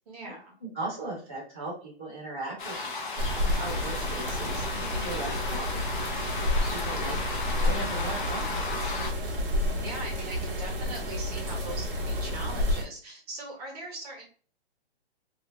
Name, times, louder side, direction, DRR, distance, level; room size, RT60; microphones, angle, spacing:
voice 1, 0.1-0.5 9.8-14.2, right 1 dB, 35° right, 0 dB, 1.1 m, -40 dB
voice 2, 0.6-3.2 3.6-6.2 6.7-7.2 7.6-8.9, right 2 dB, 15° right, -12 dB, 0.3 m, -38 dB
sound 1, 2.6-9.1, left 3 dB, 50° left, 0.8 m, -35 dB
sound 2, 3.2-12.8, left 1 dB, 60° right, 1.1 m, -30 dB
2.7 x 2.7 x 3.0 m, 0.40 s
hypercardioid pair, 170°, 32 cm